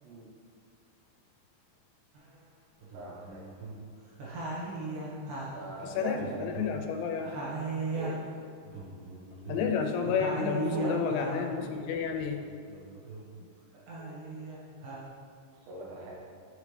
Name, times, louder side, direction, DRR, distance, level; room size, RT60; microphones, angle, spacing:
sound 1, 2.2-2.3 2.8-3.9 4.2-7.0 7.2-11.6 12.1-13.4 13.7-15.1, right 3 dB, 60° right, 2.7 m, -38 dB
voice 1, 2.9-3.5 5.5-6.4 7.9-8.2 10.7-11.2 15.7-16.2, right 1 dB, 80° right, -4 dB, 3.7 m, -39 dB
voice 2, 5.8-7.3 9.4-12.4 14.0-14.1, left 6 dB, 85° left, 4 dB, 3.0 m, -31 dB
13.5 x 5.4 x 3.3 m, 2.2 s
omnidirectional pair, 5.1 m